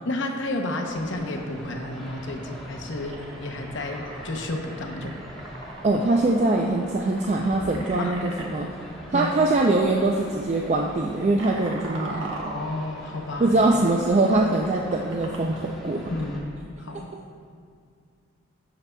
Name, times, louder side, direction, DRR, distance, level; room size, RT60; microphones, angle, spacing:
voice 1, 0.0-5.2 8.0-8.1 9.1-9.3 12.5-13.6 16.1-16.4 16.8-17.1, left 2 dB, 65° left, 3 dB, 0.7 m, -31 dB
sound 1, 0.9-16.4, equal, ahead, 1.2 m, -42 dB
sound 2, 3.1-8.5 9.5-9.7 10.0-10.3 10.8-15.6, right 2 dB, 80° right, 1.1 m, -41 dB
voice 2, 5.8-8.7 9.1-12.5 13.4-16.0 17.1-17.2, right 2 dB, 35° right, 1 dB, 0.3 m, -23 dB
14.0 x 5.8 x 2.2 m, 2.2 s
head